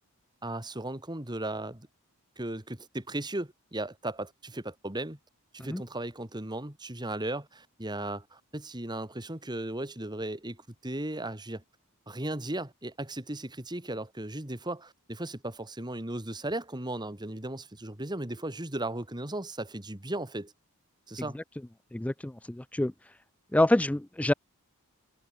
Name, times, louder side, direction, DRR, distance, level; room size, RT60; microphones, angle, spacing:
voice 1, 0.4-1.9 2.4-5.2 5.5-11.6 12.1-20.5 21.1-21.4, right 1 dB, 20° right, 2.3 m, -36 dB
voice 2, 21.9-22.9 23.5-24.3, left 1 dB, 5° left, 0.3 m, -26 dB
head